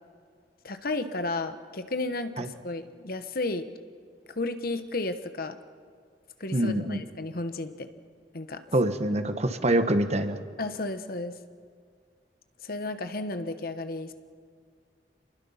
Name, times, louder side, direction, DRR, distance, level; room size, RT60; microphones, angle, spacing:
voice 1, 0.6-3.6 4.3-5.6 6.4-7.9 8.3-8.6 10.6-11.4 12.6-14.1, left 2 dB, 55° left, 10 dB, 1.2 m, -33 dB
voice 2, 6.5-7.0 8.7-10.4, right 1 dB, 40° right, 8 dB, 1.3 m, -25 dB
28.5 x 21.5 x 5.8 m, 2.2 s
head